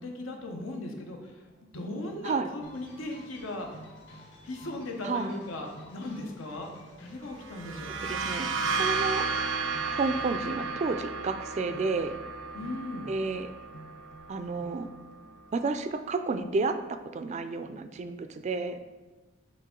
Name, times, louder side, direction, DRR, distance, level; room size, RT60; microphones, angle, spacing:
voice 1, 0.0-1.4 1.7-3.7 4.4-6.7 7.0-8.0 12.5-13.1, left 2 dB, 90° left, 2 dB, 1.0 m, -37 dB
sound 1, 1.3-16.1, right 1 dB, 40° left, 0.5 m, -53 dB
sound 2, 2.6-10.4, equal, 60° left, 1.5 m, -53 dB
voice 2, 5.0-5.4 8.0-9.2 9.9-12.2 13.1-13.5 14.3-14.9 15.5-18.9, right 3 dB, 35° right, 9 dB, 0.3 m, -31 dB
sound 3, 7.4-15.0, right 4 dB, 85° right, 0.7 m, -33 dB
7.4 x 3.6 x 3.7 m, 1.2 s
head